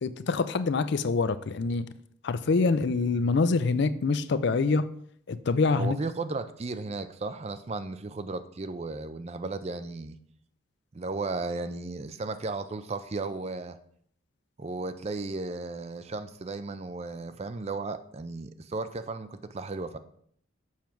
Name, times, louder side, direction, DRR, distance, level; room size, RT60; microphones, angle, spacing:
voice 1, 0.0-1.9 2.2-4.9 5.3-6.0, left 4 dB, 55° left, 13 dB, 0.4 m, -25 dB
voice 2, 5.8-10.2 10.9-13.8 14.6-20.0, right 3 dB, 30° right, 11 dB, 0.4 m, -35 dB
7.3 x 5.9 x 4.5 m, 0.66 s
head